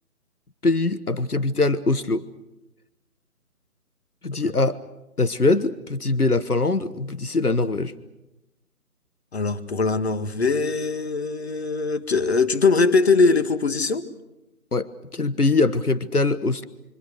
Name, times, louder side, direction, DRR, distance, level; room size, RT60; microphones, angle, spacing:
voice 1, 0.6-2.3 4.2-4.8 5.2-7.9 14.7-16.6, left 3 dB, 90° left, 14 dB, 1.4 m, -22 dB
voice 2, 9.3-14.1, left 4 dB, 45° left, 11 dB, 1.8 m, -21 dB
27.5 x 25.5 x 6.5 m, 0.95 s
figure-of-eight pair, 150°, 44 cm